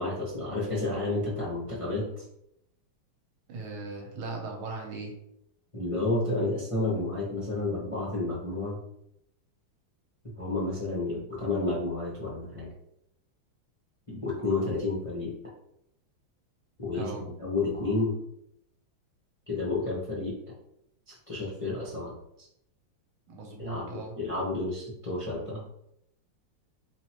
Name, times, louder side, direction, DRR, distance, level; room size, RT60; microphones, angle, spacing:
voice 1, 0.0-2.2 5.7-8.8 10.4-12.7 14.1-15.3 16.8-18.2 19.5-20.4 21.1-22.5 23.6-25.6, left 2 dB, 25° left, -7 dB, 0.8 m, -31 dB
voice 2, 3.5-5.1 16.9-17.2 23.3-24.1, right 3 dB, 80° right, 0 dB, 1.7 m, -38 dB
4.2 x 3.2 x 2.9 m, 0.79 s
omnidirectional pair, 2.3 m